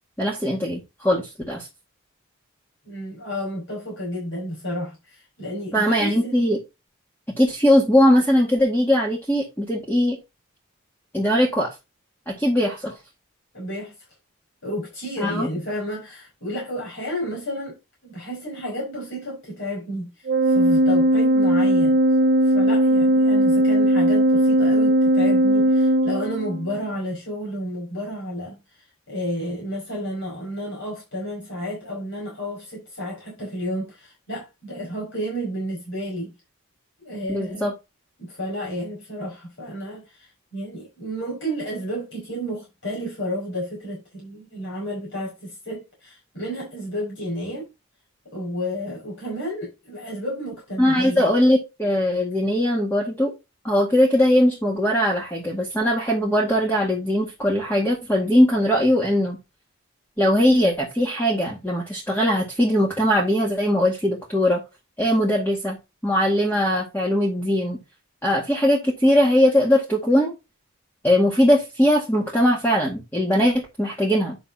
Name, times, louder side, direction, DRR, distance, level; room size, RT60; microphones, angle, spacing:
voice 1, 0.2-1.7 5.7-6.6 7.4-10.2 11.1-11.7 12.3-12.9 15.2-15.5 37.3-37.7 50.8-53.3 53.6-59.4 60.2-64.6 65.0-65.8 66.0-67.8 68.2-70.3 71.0-74.4, equal, 10° left, 1.9 m, -20 dB
voice 2, 2.8-6.4 13.5-13.9 14.6-36.3 37.0-37.7 38.2-47.7 48.3-51.3, equal, 55° left, 6.2 m, -31 dB
Organ, 20.3-26.8, right 1 dB, 45° right, 0.5 m, -18 dB
11.0 x 6.0 x 2.9 m
head